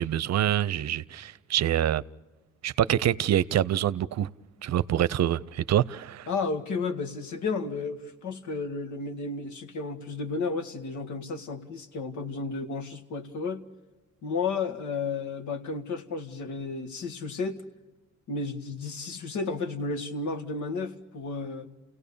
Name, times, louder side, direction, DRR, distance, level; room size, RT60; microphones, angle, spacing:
voice 1, 0.0-2.0 2.6-4.3 4.6-6.3, right 11 dB, 60° right, 0.7 m, -26 dB
voice 2, 6.3-13.6 14.2-17.6 18.3-21.7, left 4 dB, 70° left, 1.9 m, -32 dB
29.5 x 17.0 x 7.1 m
cardioid pair, 90°, 30 cm